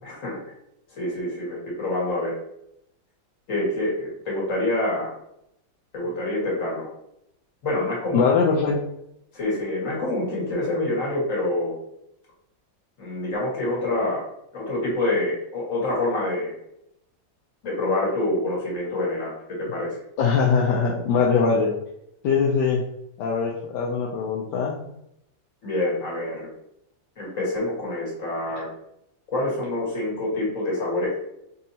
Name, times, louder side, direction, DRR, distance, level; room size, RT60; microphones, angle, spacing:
voice 1, 0.0-0.4 0.9-2.3 3.5-5.1 5.9-6.9 7.6-8.2 9.3-11.8 13.0-14.2 14.5-16.5 17.6-20.0 25.6-26.5 27.2-28.7 29.3-31.2, left 2 dB, 45° left, -4 dB, 1.8 m, -26 dB
voice 2, 8.1-8.8 20.2-21.7 22.2-22.8 23.2-24.8, left 5 dB, 75° left, -2 dB, 1.1 m, -22 dB
5.3 x 2.7 x 2.7 m, 0.79 s
omnidirectional pair, 2.0 m